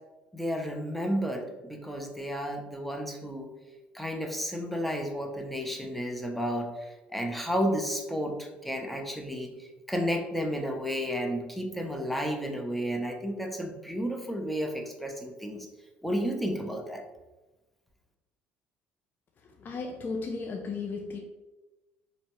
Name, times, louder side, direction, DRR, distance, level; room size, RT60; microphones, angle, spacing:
voice 1, 0.3-3.5 3.9-15.7 16.0-17.0, equal, ahead, 2 dB, 0.7 m, -32 dB
voice 2, 19.6-21.2, left 4 dB, 40° left, 2 dB, 0.4 m, -34 dB
4.2 x 2.8 x 3.0 m, 1.1 s
hypercardioid pair, 60°, 5 cm